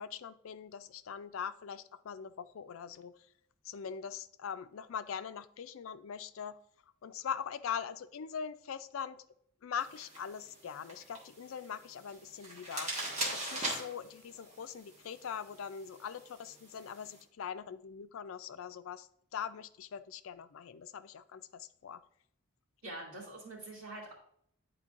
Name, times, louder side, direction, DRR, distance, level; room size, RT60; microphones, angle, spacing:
voice 1, 0.0-3.1 3.6-6.5 7.0-9.2 9.6-12.9 13.3-22.0, left 7 dB, 70° left, 13 dB, 0.4 m, -42 dB
sound 1, 9.8-17.2, right 1 dB, 30° right, 1.6 m, -42 dB
voice 2, 22.8-24.1, right 2 dB, 75° right, -5 dB, 2.6 m, -45 dB
10.0 x 4.4 x 2.5 m, 0.67 s
head